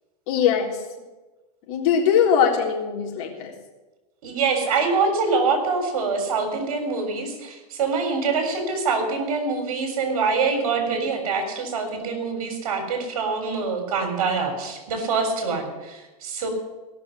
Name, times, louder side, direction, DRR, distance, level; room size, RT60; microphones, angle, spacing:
voice 1, 0.3-0.8 1.7-3.5, left 7 dB, 55° left, -1 dB, 3.9 m, -21 dB
voice 2, 4.2-16.5, right 4 dB, 70° right, 4 dB, 3.8 m, -25 dB
17.0 x 6.7 x 9.4 m, 1.2 s
hypercardioid pair, 130°, 18 cm